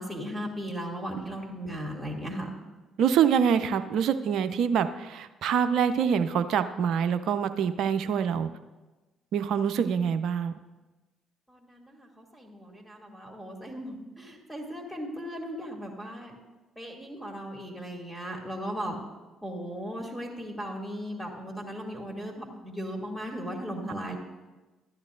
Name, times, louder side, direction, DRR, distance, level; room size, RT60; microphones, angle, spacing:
voice 1, 0.0-2.5 11.5-16.4 16.8-19.0 19.4-24.2, equal, ahead, 1 dB, 2.5 m, -37 dB
voice 2, 3.0-8.5 9.3-10.5, right 7 dB, 65° right, 10 dB, 0.4 m, -25 dB
13.5 x 10.5 x 2.5 m, 1.2 s
hypercardioid pair, 55°, 0 cm